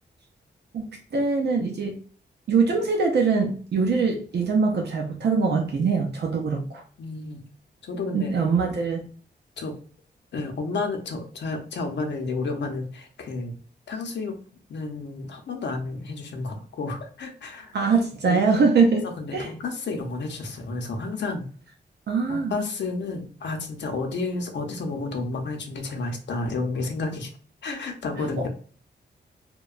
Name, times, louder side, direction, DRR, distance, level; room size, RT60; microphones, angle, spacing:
voice 1, 0.7-2.0 2.5-6.8 8.1-9.1 17.7-19.1 19.3-19.5 22.1-22.5 28.4-28.5, right 4 dB, 65° right, 2 dB, 0.5 m, -23 dB
voice 2, 7.0-7.4 7.8-8.3 9.6-9.7 10.3-13.5 13.9-14.3 14.7-17.7 18.2-18.4 18.9-21.4 22.3-27.3 27.6-28.5, left 3 dB, 75° left, 3 dB, 0.6 m, -31 dB
2.8 x 2.2 x 2.3 m, 0.43 s
wide cardioid pair, 115°, 18 cm